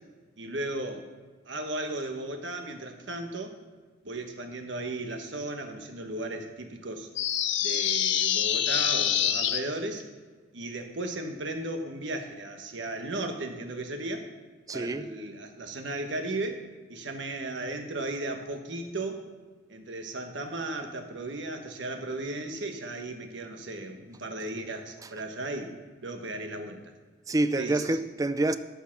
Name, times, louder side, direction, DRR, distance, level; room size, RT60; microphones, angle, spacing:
voice 1, 0.4-1.1 1.5-3.6 4.0-7.1 7.6-10.0 10.5-14.3 14.7-19.2 19.7-25.7 26.0-26.9 27.6-27.8, right 2 dB, 70° right, 1.3 m, -35 dB
sound 1, 7.2-9.6, left 10 dB, 70° left, 0.7 m, -26 dB
voice 2, 14.7-15.1 25.0-25.1 27.3-28.6, right 2 dB, 20° right, 0.3 m, -27 dB
13.0 x 5.7 x 5.8 m
head